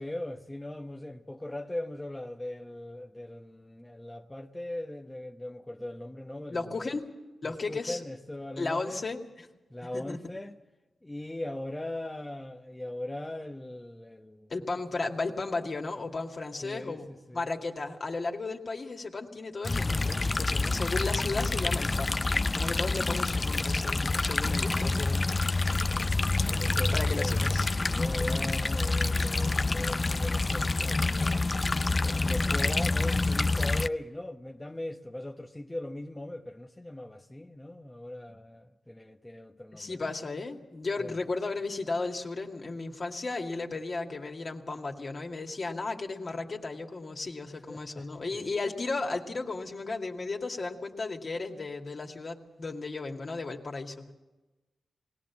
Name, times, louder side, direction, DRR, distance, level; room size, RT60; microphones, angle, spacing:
voice 1, 0.0-6.9 7.4-9.0 9.7-10.6 11.0-14.5 16.6-17.5 26.4-27.4 27.9-31.5 32.0-40.1 41.0-41.1 47.5-48.1, left 1 dB, 15° left, 1.0 m, -39 dB
voice 2, 6.5-7.1 7.4-8.0 8.6-9.5 9.9-10.2 14.5-17.1 17.3-22.2 22.5-25.9 26.9-28.2 39.7-54.1, left 3 dB, 50° left, 2.3 m, -35 dB
sound 1, 19.6-33.9, left 3 dB, 35° left, 0.6 m, -27 dB
20.5 x 17.5 x 7.3 m
cardioid pair, 50°, 0 cm